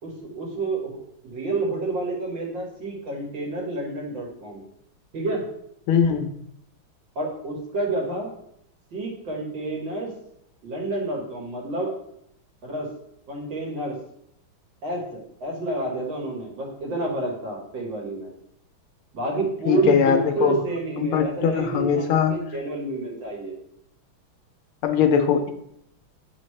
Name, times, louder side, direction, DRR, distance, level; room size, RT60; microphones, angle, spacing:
voice 1, 0.0-1.0 1.2-4.6 5.1-5.4 7.2-8.3 8.9-10.1 10.6-11.9 12.6-12.9 13.3-14.0 14.8-18.3 19.1-23.6, right 2 dB, 60° right, -1 dB, 2.1 m, -29 dB
voice 2, 5.9-6.3 19.7-20.6 21.0-22.4 24.8-25.5, left 7 dB, 80° left, 6 dB, 1.5 m, -21 dB
8.3 x 4.1 x 3.2 m, 0.74 s
omnidirectional pair, 2.4 m